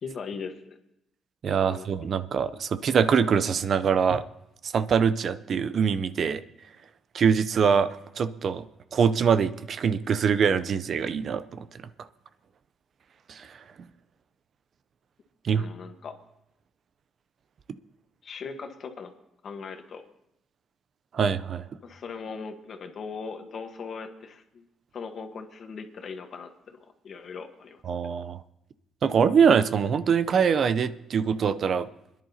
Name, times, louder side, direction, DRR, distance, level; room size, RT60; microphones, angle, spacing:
voice 1, 0.0-0.8 1.5-2.1 15.5-16.1 18.2-19.1 19.4-20.0 21.8-24.7 24.9-26.8 27.0-27.8, left 5 dB, 55° left, 6 dB, 1.3 m, -39 dB
voice 2, 1.4-4.2 4.6-6.4 7.1-8.7 8.9-11.7 13.3-13.6 15.4-15.7 21.1-21.6 27.8-28.4 29.0-31.9, right 6 dB, 55° right, 13 dB, 0.5 m, -24 dB
26.0 x 10.5 x 2.8 m, 0.83 s
cardioid pair, 90°, 0 cm